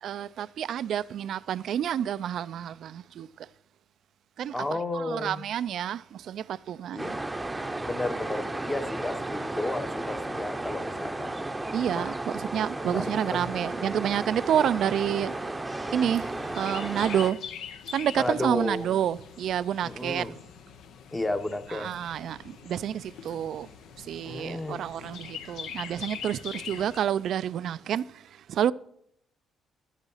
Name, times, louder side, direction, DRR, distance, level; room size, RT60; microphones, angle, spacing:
voice 1, 0.0-3.5 4.4-4.6 4.9-7.2 11.7-15.4 15.9-16.3 16.5-17.4 17.9-20.4 21.7-23.7 24.0-28.7, right 10 dB, 70° right, 0.3 m, -29 dB
voice 2, 4.5-5.4 6.9-7.1 7.8-11.3 12.0-12.2 12.8-13.5 18.2-18.9 19.8-20.4 21.1-22.0 24.2-24.8, left 2 dB, 15° left, 0.9 m, -32 dB
sound 1, 7.0-17.3, right 2 dB, 15° right, 0.7 m, -34 dB
Chirp tweet, 16.1-27.0, left 8 dB, 80° left, 0.8 m, -43 dB
11.5 x 8.1 x 5.5 m
cardioid pair, 90°, 0 cm